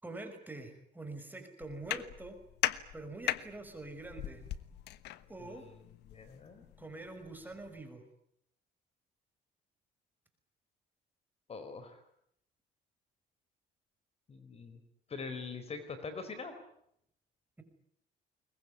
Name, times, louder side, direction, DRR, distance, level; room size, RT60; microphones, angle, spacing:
voice 1, 0.0-2.4 2.9-4.4 5.3-5.7 6.8-8.0, right 2 dB, 10° right, 6 dB, 5.7 m, -45 dB
sound 1, 1.6-7.8, left 14 dB, 80° left, 1.3 m, -40 dB
voice 2, 5.4-5.8 6.1-6.6 11.5-12.0 14.3-14.8 15.1-16.6, left 4 dB, 35° left, 9 dB, 4.6 m, -43 dB
23.0 x 20.5 x 9.8 m, 0.72 s
cardioid pair, 110°, 17 cm